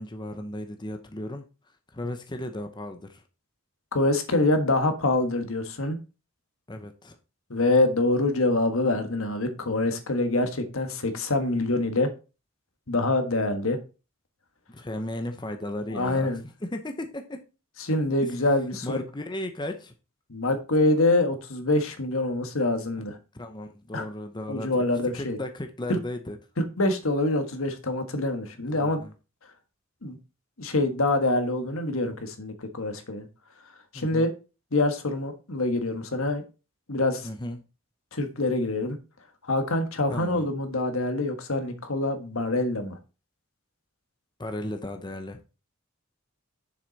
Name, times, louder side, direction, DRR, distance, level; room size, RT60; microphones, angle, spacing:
voice 1, 0.0-1.4 1.9-3.2 6.7-7.2 14.7-17.4 18.2-18.4 18.8-19.9 23.0-23.1 23.3-24.8 25.1-26.4 28.8-29.1 33.9-34.3 37.2-37.6 40.1-40.5 44.4-45.4, left 1 dB, 20° left, 0.8 m, -35 dB
voice 2, 3.9-6.0 7.5-12.1 12.9-13.8 15.9-16.4 17.8-19.0 20.3-23.2 23.9-24.1 24.5-25.4 25.9-26.0 26.6-29.0 30.0-30.2 30.6-33.3 33.9-34.3 34.7-36.4 36.9-37.3 38.1-39.0 39.5-43.0, left 2 dB, 70° left, 1.4 m, -25 dB
6.8 x 6.1 x 4.1 m
head